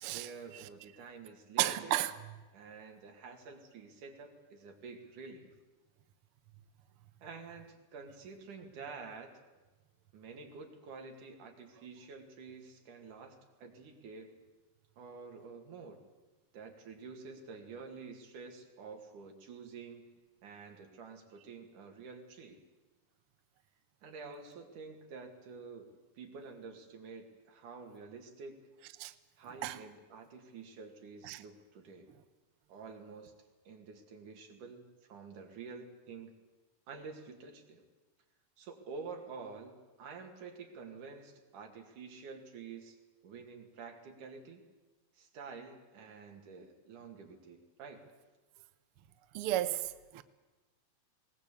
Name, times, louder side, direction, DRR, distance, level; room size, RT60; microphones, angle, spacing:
voice 1, 0.1-2.0 2.5-5.5 7.2-9.3 10.1-14.3 15.0-16.0 16.5-20.1 20.4-22.6 24.0-28.6 29.4-32.1 32.7-33.3 33.7-36.3 36.9-37.8 38.6-43.0 43.2-44.7 45.2-48.0, right 4 dB, 70° right, 3.8 m, -49 dB
voice 2, 1.6-2.1 29.0-29.1 29.6-29.8 31.3-31.4 49.3-50.2, right 14 dB, 85° right, 1.2 m, -33 dB
20.5 x 19.0 x 8.5 m
omnidirectional pair, 3.8 m